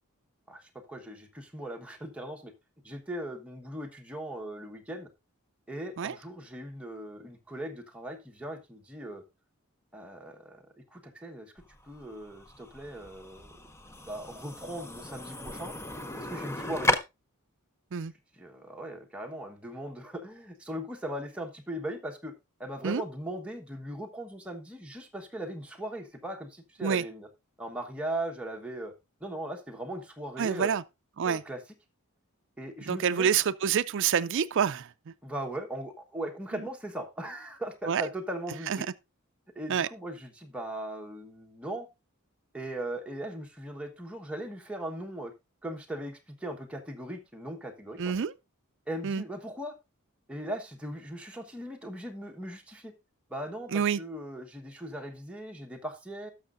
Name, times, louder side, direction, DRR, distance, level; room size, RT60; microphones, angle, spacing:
voice 1, 0.5-2.5 2.8-5.1 5.7-9.2 9.9-11.5 11.8-13.5 14.0-15.7 16.2-16.9 18.3-22.3 22.6-27.3 27.6-28.9 29.2-30.7 31.2-31.6 32.6-33.3 35.2-38.9 39.5-41.9 42.5-45.3 45.6-48.1 48.9-49.7 50.3-52.9 53.3-56.3, right 1 dB, 5° right, 1.2 m, -39 dB
sound 1, 11.6-17.0, left 1 dB, 10° left, 0.6 m, -34 dB
voice 2, 30.4-30.8 31.2-31.4 32.9-35.1 37.9-38.0 38.7-38.8 39.7-39.9 48.0-48.3 49.0-49.2 53.7-54.0, right 7 dB, 55° right, 0.4 m, -27 dB
17.5 x 6.5 x 2.5 m
head